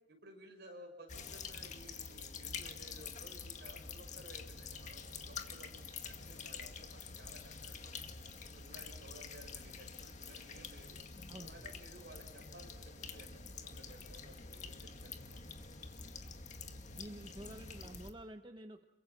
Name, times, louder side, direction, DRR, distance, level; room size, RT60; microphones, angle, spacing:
voice 1, 0.1-8.0 8.5-11.0 11.4-15.5, right 1 dB, 55° right, 3 dB, 6.9 m, -57 dB
sound 1, 1.1-18.1, left 5 dB, 40° left, 1.9 m, -47 dB
voice 2, 11.3-11.7 16.9-18.8, right 1 dB, 25° right, 6 dB, 1.0 m, -50 dB
28.5 x 23.0 x 6.1 m, 0.98 s
head